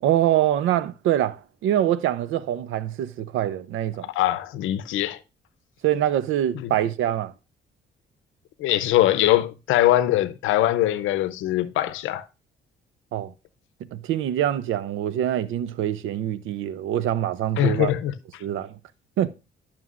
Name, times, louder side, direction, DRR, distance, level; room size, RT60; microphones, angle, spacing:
voice 1, 0.0-4.1 5.8-7.3 13.1-13.3 13.9-17.9 18.4-18.7 19.2-19.3, right 11 dB, 80° right, 0.6 m, -24 dB
voice 2, 4.1-5.2 6.5-6.7 8.6-12.3 17.6-18.4, left 13 dB, 90° left, 0.6 m, -22 dB
11.0 x 6.0 x 2.4 m
cardioid pair, 90°, 20 cm